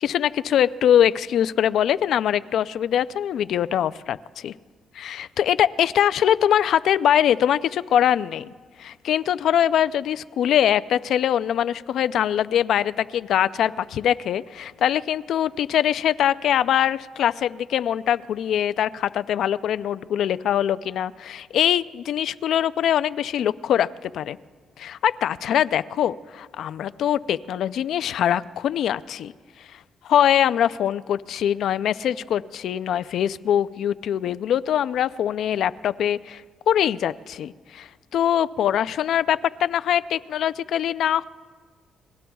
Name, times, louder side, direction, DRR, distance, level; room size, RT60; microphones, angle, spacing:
voice 1, 0.0-4.5 4.9-8.5 8.8-24.4 24.8-29.3 30.0-36.4 36.7-41.2, left 10 dB, 75° left, 15 dB, 0.4 m, -23 dB
29.5 x 21.0 x 2.3 m, 1.5 s
cardioid pair, 90°, 0 cm